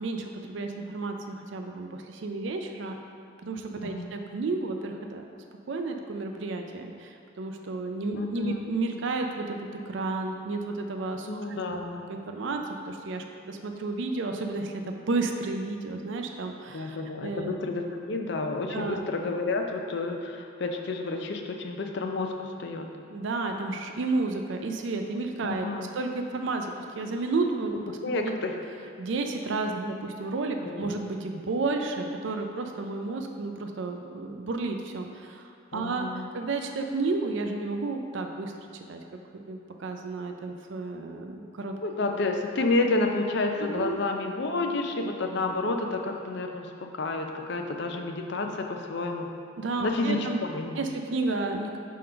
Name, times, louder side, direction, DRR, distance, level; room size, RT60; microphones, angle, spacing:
voice 1, 0.0-3.0 3.4-5.2 5.7-11.8 12.1-17.5 18.7-19.0 23.1-28.0 28.2-28.3 29.0-39.0 39.3-41.7 43.6-44.0 49.6-50.4 50.8-51.8, right 3 dB, 60° right, 4 dB, 0.4 m, -32 dB
voice 2, 8.2-8.6 11.3-12.0 16.7-22.9 25.4-25.9 28.0-28.5 30.6-30.9 35.7-36.3 41.8-49.3 49.8-50.8, left 2 dB, 55° left, 3 dB, 0.5 m, -30 dB
5.2 x 3.7 x 5.6 m, 2.5 s
head